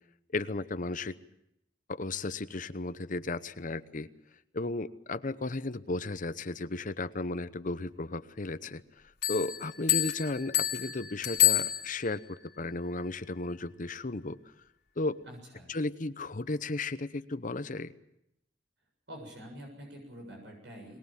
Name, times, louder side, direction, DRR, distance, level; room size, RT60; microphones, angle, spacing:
voice 1, 0.3-1.1 1.9-4.1 4.5-8.8 9.3-14.4 15.0-15.2 15.7-17.9, left 2 dB, 50° left, 13 dB, 0.9 m, -34 dB
sound 1, 9.2-12.3, left 14 dB, 65° left, 3.1 m, -28 dB
voice 2, 15.2-15.7 19.1-21.0, equal, 80° right, 1 dB, 7.2 m, -46 dB
22.5 x 20.5 x 7.4 m, 0.82 s
head